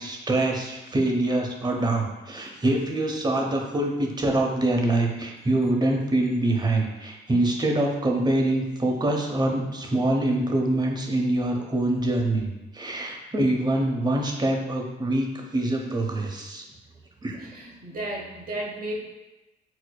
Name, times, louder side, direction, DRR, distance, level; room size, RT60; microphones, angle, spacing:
voice 1, 0.0-12.5 12.7-16.6 17.2-17.5, right 1 dB, 20° right, 1 dB, 0.7 m, -25 dB
voice 2, 17.4-19.0, right 1 dB, 45° right, -1 dB, 1.0 m, -33 dB
6.1 x 2.1 x 2.2 m, 1.0 s
supercardioid pair, 70°, 20 cm